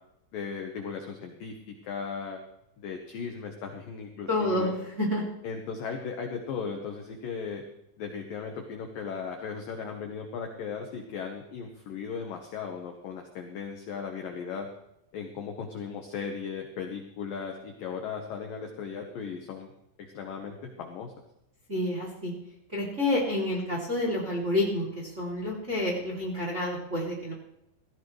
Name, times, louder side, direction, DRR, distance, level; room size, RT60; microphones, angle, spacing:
voice 1, 0.3-1.6 1.8-2.4 2.8-4.7 5.4-7.6 8.0-14.7 15.1-19.7 20.1-21.1, left 6 dB, 75° left, 3 dB, 2.0 m, -37 dB
voice 2, 4.3-4.7 5.0-5.2 21.7-22.3 22.7-27.3, left 1 dB, 20° right, -2 dB, 2.1 m, -29 dB
17.5 x 15.0 x 3.2 m, 0.82 s
omnidirectional pair, 5.7 m